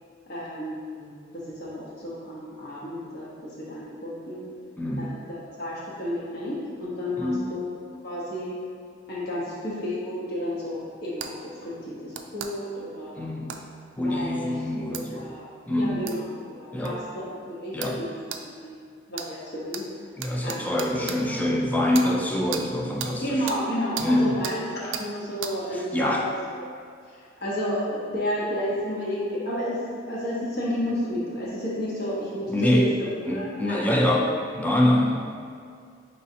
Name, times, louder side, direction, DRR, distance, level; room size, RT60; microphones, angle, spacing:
voice 1, 0.3-3.3 3.7-4.4 5.0-8.6 9.1-13.4 14.0-14.5 14.8-18.8 19.1-19.8 20.4-21.4 21.8-22.1 23.2-26.8 27.1-29.8 30.1-32.8 33.3-33.8, equal, 55° left, -7 dB, 1.1 m, -32 dB
voice 2, 4.8-5.1 7.2-7.5 13.2-13.6 14.0-15.3 15.7-16.0 16.7-17.0 17.7-18.0 20.2-23.4 24.0-24.4 25.7-26.3 32.5-33.0 33.3-35.2, left 1 dB, 10° left, -1 dB, 0.4 m, -25 dB
sound 1, 11.2-11.3 12.1-12.5 13.5-13.6 14.9-15.0 16.1-16.2 16.9-17.0 17.8-18.0 18.3-18.4 19.1-19.3 19.7-19.8 20.2-21.2 21.9-22.1 22.5-22.6 23.0-23.1 23.5-23.6 24.0-24.1 24.4-24.6 24.9-25.1 25.4-25.5, right 8 dB, 65° right, 0.3 m, -34 dB
5.2 x 3.2 x 2.8 m, 2.3 s
head